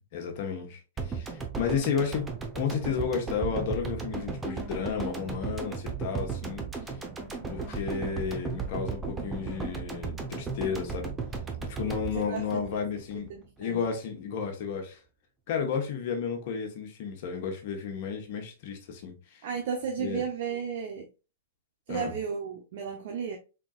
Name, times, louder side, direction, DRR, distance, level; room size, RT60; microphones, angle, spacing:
voice 1, 0.1-2.3 2.5-6.7 7.5-11.1 11.7-13.3 13.6-15.0 15.5-19.4 20.0-20.2 21.9-22.1, left 6 dB, 55° left, 1.1 m, -32 dB
sound 1, 1.0-13.3 13.6-13.7, right 5 dB, 15° right, 0.8 m, -35 dB
voice 2, 12.2-12.8 13.3-13.8 19.4-21.1 21.9-23.4, right 7 dB, 55° right, 0.7 m, -34 dB
3.7 x 3.6 x 2.4 m
hypercardioid pair, 115°, 0 cm